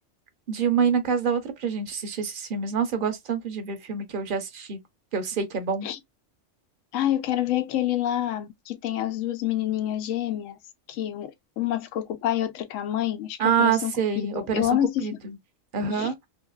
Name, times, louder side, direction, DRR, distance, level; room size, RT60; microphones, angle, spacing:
voice 1, 0.5-4.8 5.1-5.9 13.4-14.7 15.0-15.1 15.7-16.2, right 6 dB, 50° right, 0.7 m, -26 dB
voice 2, 6.9-10.6 10.9-15.1 15.9-16.1, left 12 dB, 80° left, 1.0 m, -27 dB
2.8 x 2.8 x 2.3 m
omnidirectional pair, 1.3 m